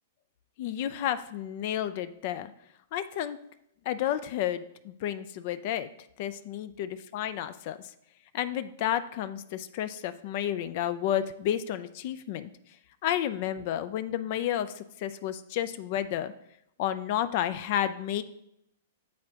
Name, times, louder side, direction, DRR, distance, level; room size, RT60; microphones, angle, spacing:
voice 1, 0.6-2.5 2.9-3.4 3.9-5.9 6.2-7.8 8.3-12.5 13.0-16.3 16.8-18.2, left 11 dB, 50° left, 13 dB, 0.4 m, -31 dB
9.3 x 3.8 x 2.8 m, 0.76 s
hypercardioid pair, 115°, 0 cm